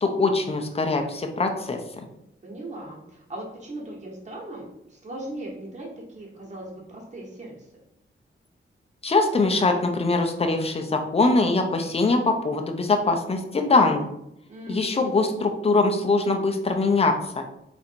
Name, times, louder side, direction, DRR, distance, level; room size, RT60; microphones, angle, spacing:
voice 1, 0.0-2.0 9.0-14.1 14.7-17.4, left 3 dB, 30° left, 4 dB, 0.5 m, -22 dB
voice 2, 2.4-7.7 14.5-15.1, right 1 dB, 35° right, -3 dB, 1.2 m, -38 dB
3.9 x 2.6 x 4.3 m, 0.80 s
wide cardioid pair, 135°, 21 cm